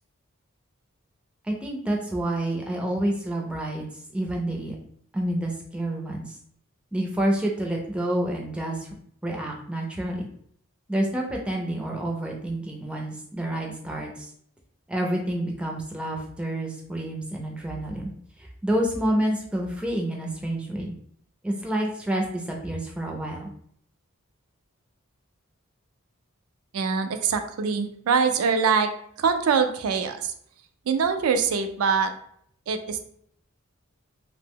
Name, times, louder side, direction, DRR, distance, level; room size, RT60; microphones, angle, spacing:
voice 1, 1.4-4.8 5.1-6.4 6.9-8.9 9.2-10.3 10.9-14.3 14.9-20.9 21.4-23.5, right 1 dB, 5° right, -1 dB, 0.4 m, -28 dB
voice 2, 26.7-28.9 29.2-30.3 30.9-32.1 32.7-33.0, right 5 dB, 85° right, 7 dB, 0.4 m, -23 dB
2.7 x 2.0 x 3.5 m, 0.65 s
head